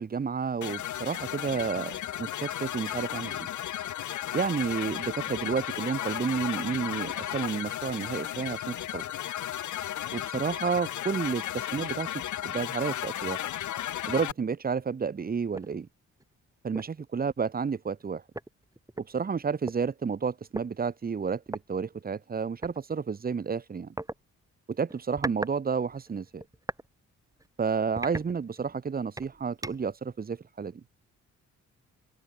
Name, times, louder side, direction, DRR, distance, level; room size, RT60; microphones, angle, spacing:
voice 1, 0.0-3.5 4.3-9.0 10.1-12.1 12.4-13.4 14.1-15.9 16.6-18.2 19.0-23.9 24.7-26.4 27.6-30.8, right 6 dB, 30° right, 1.2 m, -31 dB
sound 1, 0.6-14.3, left 12 dB, 75° left, 4.6 m, -34 dB
sound 2, 15.5-15.7 16.2-16.3 16.7-17.0 18.0-18.1 18.3-19.8 20.5-20.7 21.5-21.6 22.6-22.8 24.0-24.2 24.9-25.6 25.9-26.9 27.3-27.5 28.0-28.8 29.2-30.0, right 2 dB, 10° right, 6.0 m, -38 dB
open air
cardioid pair, 90°, 30 cm